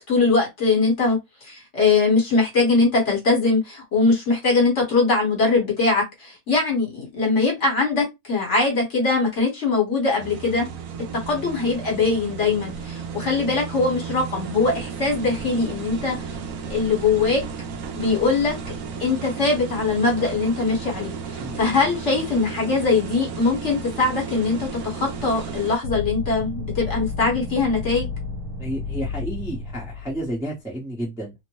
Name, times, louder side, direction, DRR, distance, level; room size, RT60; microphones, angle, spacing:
voice 1, 0.1-10.7 11.3-16.2 16.7-17.4 18.0-18.5 19.0-28.1, left 3 dB, 50° left, 1.4 m, -21 dB
sound 1, 10.2-25.8, right 5 dB, 70° right, 0.9 m, -33 dB
sound 2, 25.8-30.4, left 4 dB, 85° right, 1.2 m, -31 dB
voice 2, 28.6-31.3, right 1 dB, 5° right, 0.7 m, -31 dB
2.9 x 2.1 x 3.0 m
omnidirectional pair, 1.7 m